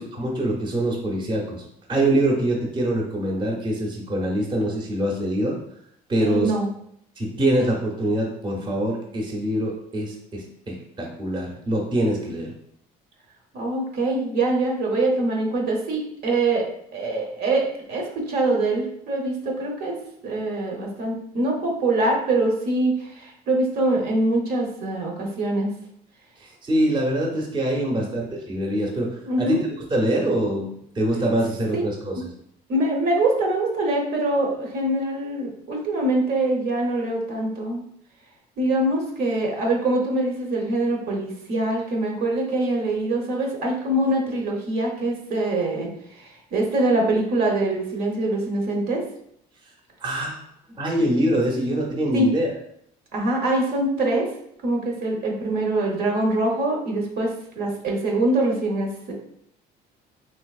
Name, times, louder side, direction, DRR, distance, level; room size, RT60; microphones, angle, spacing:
voice 1, 0.0-5.6 6.1-6.5 7.2-12.5 26.4-30.7 30.9-32.3 50.0-50.4 50.8-52.5, right 1 dB, 25° right, -1 dB, 0.8 m, -24 dB
voice 2, 6.2-6.7 13.5-16.7 16.9-20.0 20.2-25.7 27.9-28.2 29.3-29.6 31.7-31.9 32.7-37.8 38.6-49.0 52.1-52.3 53.1-54.3 54.6-59.1, right 2 dB, 70° right, 0 dB, 0.9 m, -24 dB
3.4 x 2.9 x 2.4 m, 0.71 s
cardioid pair, 110°, 17 cm